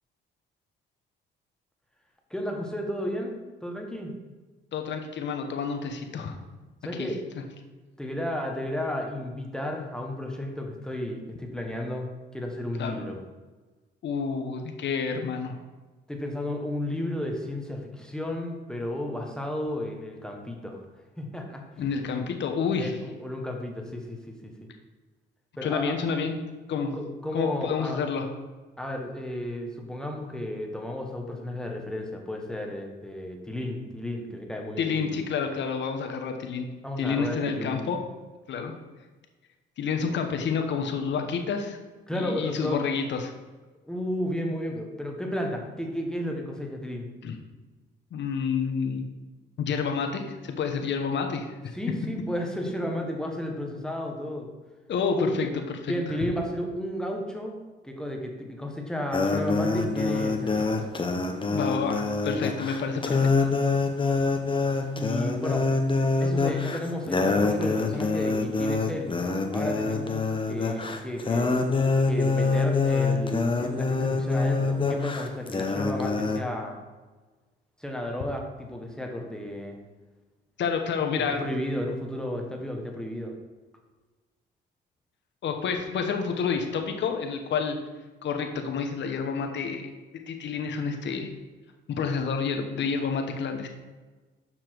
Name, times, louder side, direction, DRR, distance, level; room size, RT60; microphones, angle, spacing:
voice 1, 2.3-4.1 6.8-7.2 8.0-13.2 16.1-20.8 21.2-21.6 22.8-24.5 25.6-25.9 26.9-28.0 28.8-35.1 36.8-37.8 40.0-40.1 42.1-42.8 43.9-47.1 51.7-54.5 55.1-55.4 55.9-57.6 57.8-60.9 65.0-65.7 66.2-69.1 69.5-71.5 72.0-76.8 77.8-79.8 81.3-83.3, left 1 dB, 5° left, 1 dB, 1.3 m, -33 dB
voice 2, 4.7-6.3 7.0-7.1 12.8-13.0 14.0-15.5 21.8-22.9 25.6-26.4 26.7-26.9 27.3-28.3 34.8-36.7 37.0-38.0 38.5-38.7 39.8-41.8 42.1-43.3 47.2-47.4 48.1-49.0 49.6-51.5 54.9-55.5 55.8-55.9 61.5-63.5 80.6-81.4 85.4-87.8 88.2-89.9 90.3-91.3 91.9-93.7, left 5 dB, 65° left, 4 dB, 1.1 m, -29 dB
sound 1, 59.1-76.4, left 3 dB, 25° left, 0.9 m, -25 dB
6.8 x 5.8 x 4.6 m, 1.3 s
cardioid pair, 90°, 20 cm